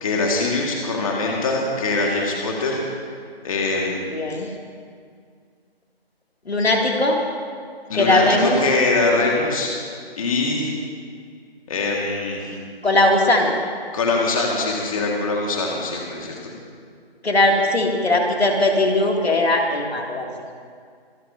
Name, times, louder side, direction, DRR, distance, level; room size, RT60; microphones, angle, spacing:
voice 1, 0.0-2.8 3.4-4.0 7.9-9.7 10.2-10.7 11.7-12.5 13.9-16.5, left 3 dB, 35° left, -1 dB, 1.9 m, -23 dB
voice 2, 4.1-4.5 6.5-7.2 7.9-8.6 12.8-13.5 17.2-20.3, left 2 dB, 75° left, 0 dB, 2.6 m, -19 dB
25.0 x 13.5 x 2.8 m, 2.1 s
figure-of-eight pair, 160°, 31 cm